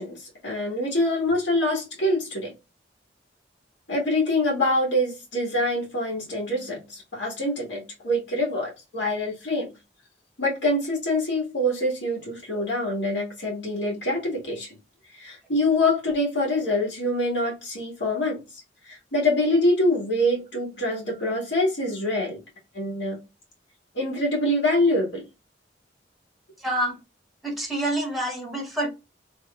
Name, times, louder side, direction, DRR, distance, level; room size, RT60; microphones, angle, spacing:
voice 1, 0.0-2.5 3.9-9.7 10.4-14.7 15.2-18.4 18.9-22.4 22.7-23.2 24.0-25.2, left 1 dB, 90° left, 1.7 m, -25 dB
voice 2, 26.6-27.0 27.4-28.9, right 1 dB, ahead, 1.3 m, -27 dB
3.6 x 3.0 x 2.3 m
head